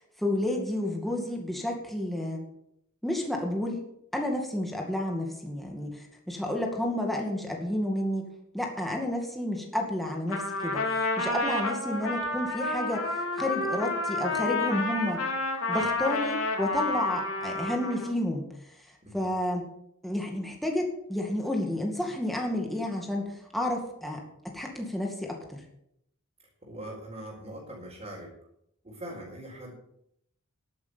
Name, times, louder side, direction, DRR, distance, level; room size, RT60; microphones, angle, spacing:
voice 1, 0.0-2.4 3.0-3.8 4.1-8.3 8.5-15.2 15.7-18.8 19.1-19.6 20.0-25.6, left 1 dB, ahead, 0 dB, 2.2 m, -31 dB
Trumpet, 10.3-18.1, left 2 dB, 70° left, 3.2 m, -30 dB
voice 2, 26.6-28.3 28.8-29.7, right 1 dB, 30° right, -6 dB, 4.5 m, -42 dB
11.5 x 9.9 x 7.0 m, 0.76 s
head